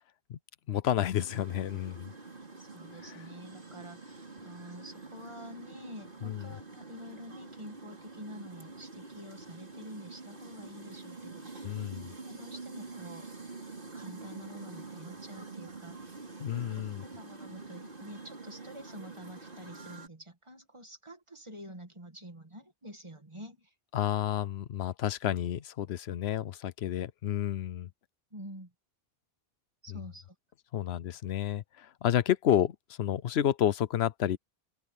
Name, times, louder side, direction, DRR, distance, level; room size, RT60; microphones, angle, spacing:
voice 1, 0.7-2.1 3.1-3.2 6.2-6.5 11.6-12.1 16.4-17.0 23.9-27.9 30.7-34.4, left 11 dB, 90° left, 0.9 m, -30 dB
sound 1, 1.2-20.1, right 3 dB, 60° right, 3.7 m, -47 dB
voice 2, 2.6-11.9 12.2-13.3 13.9-16.2 16.5-23.7 28.3-28.7 29.8-30.3, equal, 30° right, 2.2 m, -48 dB
open air
omnidirectional pair, 1.0 m